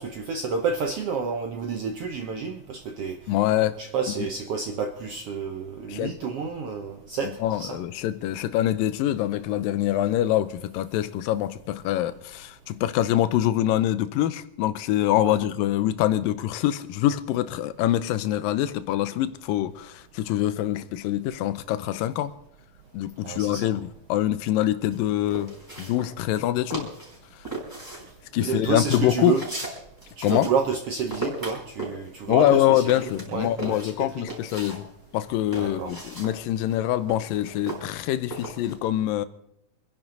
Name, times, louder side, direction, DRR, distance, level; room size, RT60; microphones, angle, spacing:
voice 1, 0.0-3.2 3.8-7.8 15.2-15.4 23.2-23.7 28.4-29.4 30.2-32.8 33.3-34.3 35.6-35.9, right 5 dB, 80° right, 1.3 m, -30 dB
voice 2, 3.3-3.8 5.9-6.2 7.4-22.3 22.9-26.9 28.3-29.4 30.2-30.5 32.3-34.9 35.1-39.3, left 13 dB, 85° left, 2.5 m, -25 dB
sound 1, 24.9-26.4 26.7-27.2 27.4-30.8 31.1-34.8 35.1-38.7, right 2 dB, 5° right, 4.4 m, -37 dB
25.5 x 10.5 x 3.9 m
omnidirectional pair, 3.9 m